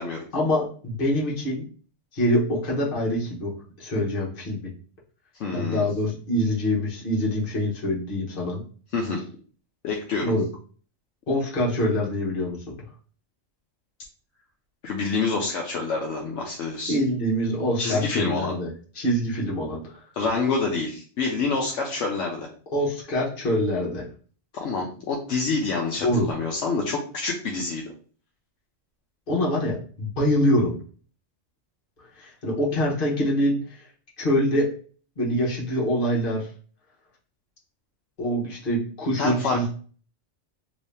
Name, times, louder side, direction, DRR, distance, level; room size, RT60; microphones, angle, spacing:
voice 1, 0.3-1.7 2.1-4.7 5.5-8.6 10.2-10.4 11.3-12.7 16.9-18.7 18.9-20.0 22.7-24.1 26.0-26.3 29.3-30.8 32.0-33.9 34.2-34.7 35.2-36.5 38.2-39.7, equal, 45° left, -4 dB, 1.2 m, -25 dB
voice 2, 5.4-5.9 8.9-9.2 9.8-10.3 14.8-17.0 17.8-18.5 20.1-22.5 24.5-27.9 39.2-39.7, left 4 dB, 70° left, -1 dB, 0.9 m, -27 dB
3.1 x 2.7 x 3.2 m, 0.42 s
omnidirectional pair, 1.3 m